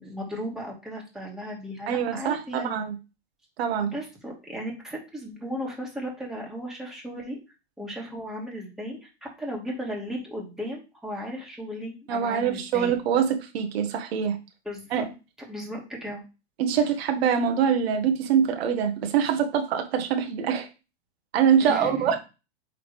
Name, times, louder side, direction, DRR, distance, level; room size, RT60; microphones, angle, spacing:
voice 1, 0.0-2.8 3.8-7.3 7.8-13.0 14.6-15.0 15.5-16.2 21.6-22.2, equal, ahead, 2.3 m, -36 dB
voice 2, 1.9-3.0 3.6-3.9 12.1-14.4 14.9-15.0 16.6-20.7 21.3-22.2, right 8 dB, 70° right, 1.5 m, -24 dB
8.4 x 3.9 x 3.5 m
hypercardioid pair, 125°, 32 cm